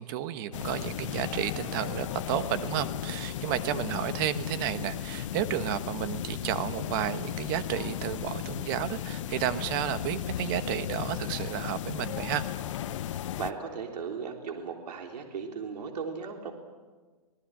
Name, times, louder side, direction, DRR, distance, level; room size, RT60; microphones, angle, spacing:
voice 1, 0.0-12.5, right 11 dB, 30° right, 11 dB, 1.2 m, -32 dB
sound 1, 0.5-13.5, left 11 dB, 50° left, 0.8 m, -35 dB
voice 2, 13.4-16.5, right 6 dB, 80° right, 2 dB, 3.6 m, -36 dB
26.5 x 19.0 x 7.7 m, 1.3 s
hypercardioid pair, 160°, 21 cm